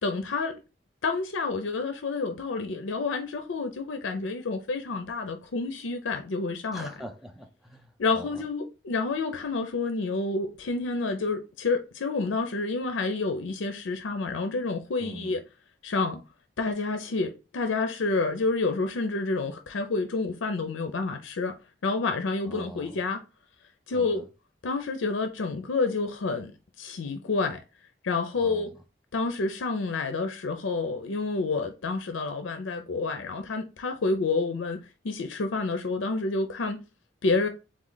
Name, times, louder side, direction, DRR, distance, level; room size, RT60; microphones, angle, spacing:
voice 1, 0.0-0.6 1.0-6.9 8.0-15.4 15.8-16.2 16.6-21.5 21.8-23.2 23.9-24.2 24.6-26.5 26.8-27.6 28.0-28.7 29.1-36.8 37.2-37.5, left 3 dB, 85° left, 0.5 m, -29 dB
voice 2, 6.7-8.4 15.0-15.4 22.4-23.0 23.9-24.3 28.3-28.8, right 1 dB, ahead, 0.5 m, -44 dB
3.8 x 3.1 x 3.9 m
head